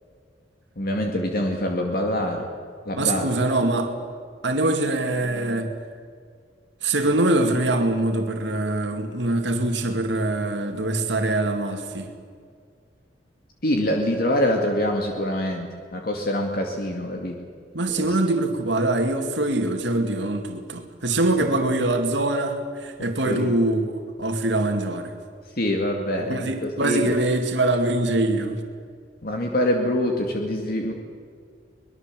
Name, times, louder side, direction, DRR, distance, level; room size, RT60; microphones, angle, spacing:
voice 1, 0.8-2.4 2.9-3.3 13.6-17.4 17.9-18.1 23.2-23.5 25.6-27.1 29.2-30.9, left 1 dB, 55° left, 2 dB, 2.3 m, -25 dB
voice 2, 2.9-3.9 4.4-5.7 6.8-12.1 17.7-23.9 24.2-25.1 26.3-28.6, right 2 dB, 70° right, 4 dB, 2.3 m, -23 dB
24.5 x 21.0 x 7.7 m, 2.1 s
head